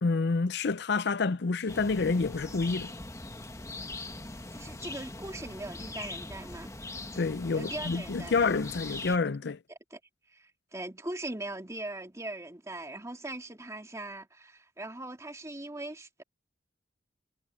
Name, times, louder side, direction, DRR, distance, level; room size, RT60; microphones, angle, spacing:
voice 1, 0.0-2.9 7.2-9.6, left 4 dB, 65° left, 0.6 m, -28 dB
sound 1, 1.7-9.2, left 2 dB, 20° left, 1.5 m, -41 dB
voice 2, 4.5-6.7 7.5-8.5 9.7-10.0 10.3-16.2, right 2 dB, 15° right, 2.2 m, -40 dB
head